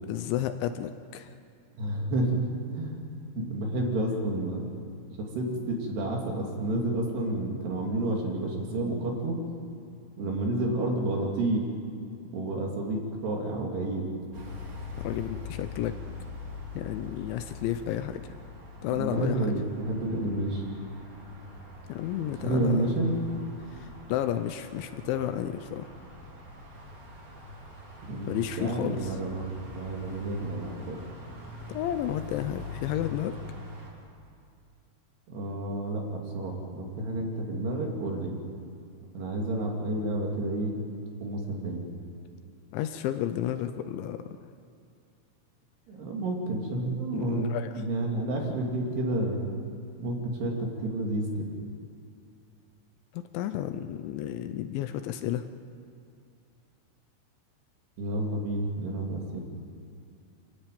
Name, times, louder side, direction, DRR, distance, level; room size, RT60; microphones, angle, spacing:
voice 1, 0.1-1.3 15.0-16.0 16.8-18.2 18.8-19.5 21.9-22.9 23.7-25.9 28.3-29.2 31.7-33.4 42.7-44.4 47.1-47.7 53.1-55.5, left 11 dB, 80° left, 9 dB, 2.9 m, -32 dB
voice 2, 1.8-2.4 2.7-3.0 3.3-4.7 5.2-9.4 10.2-11.6 12.3-14.1 18.9-20.7 22.2-23.2 28.0-31.0 35.3-38.4 39.1-40.8 41.2-41.9 45.9-49.5 50.0-51.5 58.0-59.4, right 1 dB, 60° right, 0 dB, 4.5 m, -30 dB
sound 1, 14.3-33.9, left 3 dB, 35° right, 4.7 m, -43 dB
27.5 x 13.5 x 9.3 m, 2.4 s
omnidirectional pair, 5.6 m